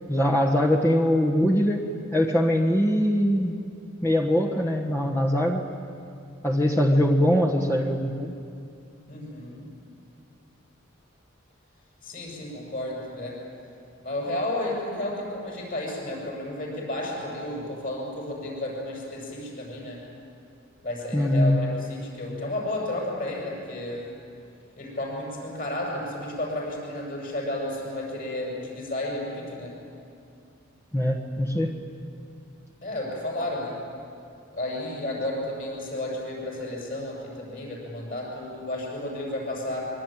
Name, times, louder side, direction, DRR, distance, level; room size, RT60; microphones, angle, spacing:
voice 1, 0.1-1.8 2.1-3.6 4.0-5.6 6.4-8.3 21.1-21.6 30.9-31.7, equal, 15° left, -1 dB, 1.4 m, -22 dB
voice 2, 9.1-9.7 12.0-13.4 14.0-20.0 20.8-24.0 24.8-29.8 32.8-33.8 34.5-39.9, left 1 dB, 45° left, -2 dB, 7.2 m, -32 dB
25.5 x 23.5 x 9.1 m, 2.5 s
head